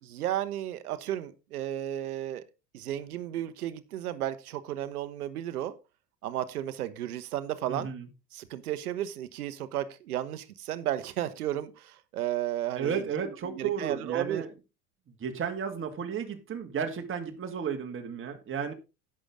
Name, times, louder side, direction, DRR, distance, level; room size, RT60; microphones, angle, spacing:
voice 1, 0.0-2.4 2.7-5.7 6.2-7.9 8.3-14.4, right 12 dB, 70° right, 1.3 m, -33 dB
voice 2, 7.7-8.1 12.8-14.5 15.2-18.7, right 7 dB, 25° right, 2.2 m, -33 dB
11.5 x 9.2 x 3.7 m
figure-of-eight pair, 75°, 47 cm